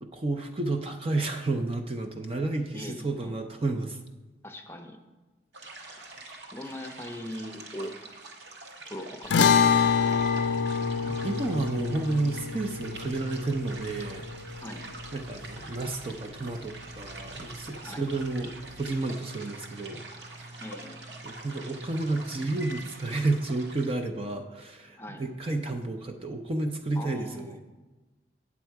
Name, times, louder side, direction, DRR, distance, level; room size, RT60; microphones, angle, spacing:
voice 1, 0.0-4.0 6.0-6.1 11.0-14.2 14.5-14.6 15.1-20.0 21.2-27.6, right 2 dB, 30° right, 4 dB, 0.5 m, -31 dB
voice 2, 2.7-3.5 4.4-5.0 6.1-6.2 6.5-8.0 8.9-9.9 14.6-14.8 17.8-18.1 20.6-21.0 25.0-25.2 26.9-27.7, left 1 dB, 15° left, 4 dB, 0.7 m, -41 dB
sound 1, 5.5-23.9, right 2 dB, 75° right, 1.1 m, -45 dB
sound 2, 9.3-15.8, left 6 dB, 75° left, 0.4 m, -26 dB
sound 3, 10.1-22.9, right 1 dB, 55° right, 1.2 m, -47 dB
8.5 x 7.1 x 4.6 m, 1.2 s
head